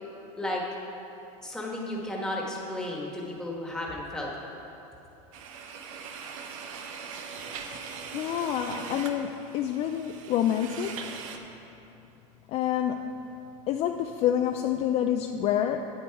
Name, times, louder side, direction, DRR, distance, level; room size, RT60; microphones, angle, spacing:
voice 1, 1.4-4.3, left 1 dB, 5° left, -3 dB, 1.4 m, -33 dB
sound 1, 5.3-11.4, right 6 dB, 75° right, 0.8 m, -41 dB
voice 2, 8.1-11.0 12.5-13.1 13.7-15.9, left 10 dB, 40° left, 5 dB, 0.4 m, -28 dB
8.7 x 8.4 x 4.6 m, 3.0 s
supercardioid pair, 125°, 17 cm